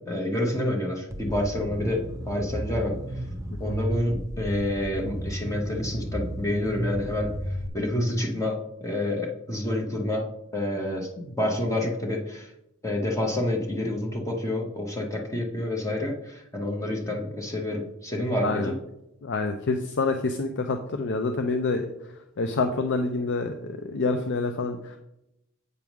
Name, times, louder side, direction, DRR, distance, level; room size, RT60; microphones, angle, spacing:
voice 1, 0.0-3.0 3.6-7.3 7.7-10.3 10.5-12.5 12.8-18.8, left 1 dB, 15° left, 0 dB, 0.9 m, -28 dB
sound 1, 1.1-7.7, right 1 dB, 15° right, 0.7 m, -33 dB
voice 2, 18.4-18.7 19.2-21.9 22.4-25.0, left 3 dB, 55° left, 7 dB, 0.5 m, -27 dB
8.1 x 3.6 x 6.0 m, 0.85 s
head